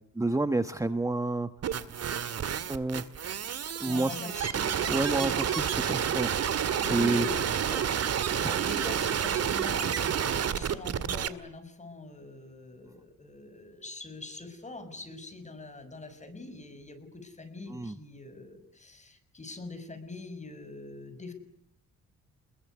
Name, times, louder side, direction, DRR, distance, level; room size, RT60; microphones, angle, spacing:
voice 1, 0.1-1.5 2.7-3.0 3.8-4.2 4.4-4.5 4.9-7.3 8.4-8.9 17.7-18.0, right 2 dB, 10° right, 10 dB, 1.3 m, -30 dB
sound 1, 1.6-11.3, right 8 dB, 55° right, 2.1 m, -29 dB
voice 2, 3.9-5.3 6.8-7.3 8.5-21.3, left 2 dB, 25° left, 9 dB, 6.5 m, -43 dB
28.5 x 22.0 x 9.4 m, 0.70 s
cardioid pair, 90°, 30 cm